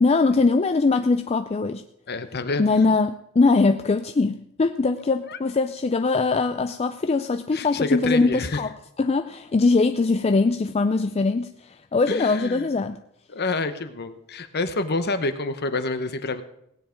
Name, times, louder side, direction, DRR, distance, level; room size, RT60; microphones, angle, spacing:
voice 1, 0.0-1.8 2.6-8.7 9.0-13.0, left 3 dB, 30° left, 9 dB, 0.4 m, -21 dB
voice 2, 2.1-2.6 5.3-5.4 7.5-8.6 12.1-12.7 13.3-16.4, left 3 dB, 50° left, 10 dB, 1.0 m, -28 dB
17.0 x 9.5 x 5.1 m, 0.77 s
head